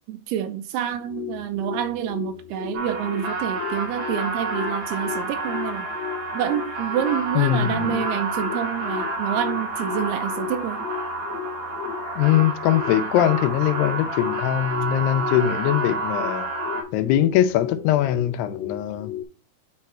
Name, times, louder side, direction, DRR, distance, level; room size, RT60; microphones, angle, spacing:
voice 1, 0.1-5.9 6.3-10.9, right 11 dB, 80° right, 2.6 m, -28 dB
sound 1, 0.9-19.2, left 11 dB, 65° left, 2.7 m, -36 dB
Cold Winter, 2.7-16.8, right 2 dB, 55° right, 3.5 m, -29 dB
voice 2, 7.4-8.0 12.2-16.5 16.9-19.1, left 11 dB, 80° left, 2.7 m, -22 dB
9.8 x 3.6 x 4.3 m
omnidirectional pair, 4.8 m